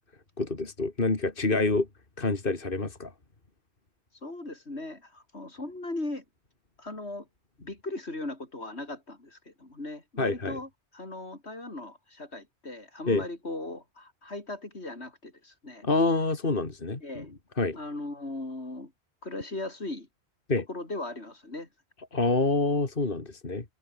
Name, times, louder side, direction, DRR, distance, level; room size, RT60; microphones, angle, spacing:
voice 1, 0.4-1.9 2.2-3.1 10.2-10.6 13.1-13.2 15.8-17.3 17.6-17.8 20.5-20.6 22.1-23.6, left 3 dB, 55° left, 2.8 m, -27 dB
voice 2, 4.2-6.2 6.8-7.3 7.6-15.8 17.0-17.3 17.7-18.9 19.2-20.1 20.6-21.7, left 2 dB, 85° left, 5.1 m, -38 dB
omnidirectional pair, 1.1 m